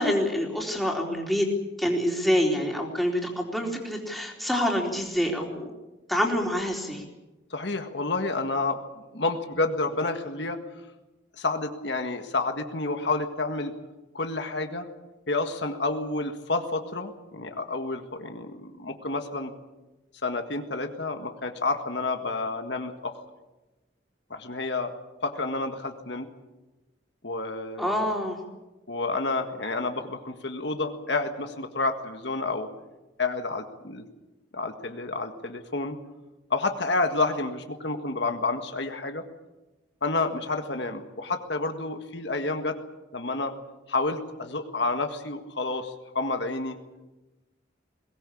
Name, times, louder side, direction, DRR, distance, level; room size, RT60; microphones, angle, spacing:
voice 1, 0.0-1.5 1.8-5.7 6.1-7.0 27.8-28.4, equal, ahead, 0 dB, 3.9 m, -26 dB
voice 2, 7.5-8.8 9.1-10.6 11.4-13.7 14.1-14.9 15.3-19.5 20.2-23.1 24.3-24.9 25.2-26.3 27.2-28.1 28.9-32.7 33.2-34.0 34.5-36.0 36.5-39.2 40.0-42.8 43.1-43.5 43.9-46.8, left 3 dB, 60° left, 6 dB, 1.7 m, -29 dB
22.0 x 18.5 x 8.6 m, 1.1 s
head